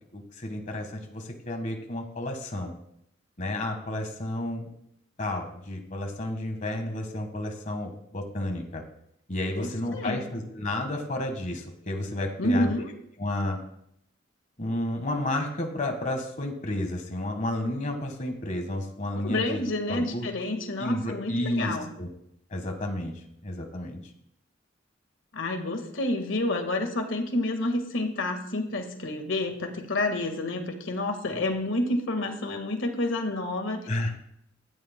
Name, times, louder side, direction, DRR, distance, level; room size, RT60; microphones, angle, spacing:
voice 1, 0.1-2.7 3.4-4.7 5.2-8.8 9.3-12.7 13.2-13.6 14.6-19.6 19.9-20.3 20.8-22.1 22.5-23.1 23.4-24.0 33.9-34.1, left 1 dB, 40° left, 4 dB, 1.5 m, -31 dB
voice 2, 9.5-10.2 12.4-12.9 19.1-21.9 25.3-33.9, left 2 dB, 85° left, 5 dB, 1.6 m, -29 dB
16.5 x 12.5 x 2.2 m, 0.74 s
head